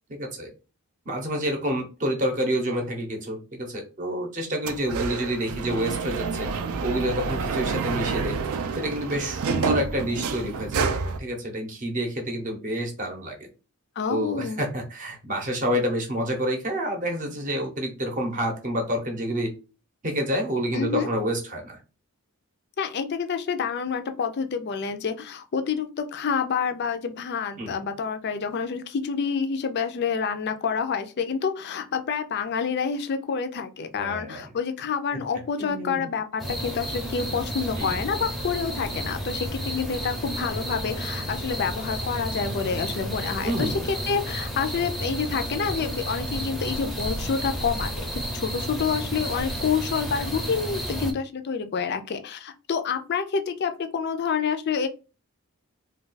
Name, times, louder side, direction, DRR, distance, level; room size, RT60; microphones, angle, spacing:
voice 1, 0.1-0.5 1.1-6.5 6.8-8.4 8.8-13.4 14.1-19.5 20.0-21.8 27.6-27.7 34.0-34.5 35.6-36.1 37.3-37.4 37.8-38.0 43.4-43.9, equal, 35° right, 2 dB, 0.7 m, -28 dB
sound 1, 4.7-11.2, right 5 dB, 75° right, 0.4 m, -28 dB
voice 2, 14.0-14.6 20.7-21.1 22.8-54.9, left 6 dB, 50° left, 8 dB, 0.4 m, -28 dB
sound 2, 36.4-51.1, equal, ahead, 0.5 m, -32 dB
2.3 x 2.3 x 3.9 m, 0.33 s
head